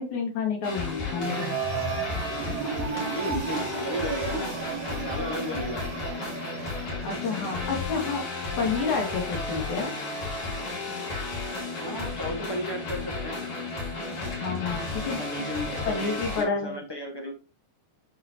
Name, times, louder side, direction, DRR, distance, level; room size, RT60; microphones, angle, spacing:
voice 1, 0.0-1.5 7.0-8.2 8.6-9.9 14.4-15.2 15.8-16.8, left 5 dB, 60° left, 1 dB, 3.6 m, -29 dB
sound 1, 0.6-16.4, left 3 dB, 90° left, 5.6 m, -33 dB
sound 2, 1.2-9.2, right 8 dB, 65° right, 1.9 m, -35 dB
voice 2, 3.1-4.6 4.9-5.8 11.8-13.4 15.0-17.4, left 1 dB, 20° left, 0 dB, 0.6 m, -34 dB
9.6 x 5.8 x 3.0 m, 0.31 s
omnidirectional pair, 3.8 m